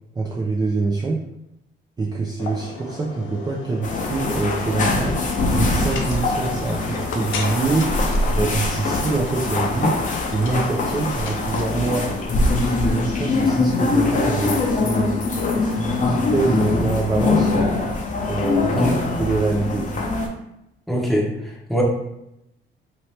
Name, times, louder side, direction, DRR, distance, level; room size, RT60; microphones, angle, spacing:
voice 1, 0.2-1.2 2.0-5.2 5.5-7.9 8.4-10.0 10.3-12.1 12.8-15.2 15.6-17.5 18.3-18.9 19.2-20.0, right 3 dB, 20° right, -3 dB, 0.4 m, -24 dB
sound 1, 2.4-15.0, left 4 dB, 80° left, 0.6 m, -35 dB
sound 2, 3.8-20.3, left 3 dB, 40° left, 0.7 m, -23 dB
voice 2, 18.7-19.0 20.9-21.8, equal, ahead, -2 dB, 0.8 m, -23 dB
3.0 x 2.8 x 3.2 m, 0.85 s
cardioid pair, 90°, 20 cm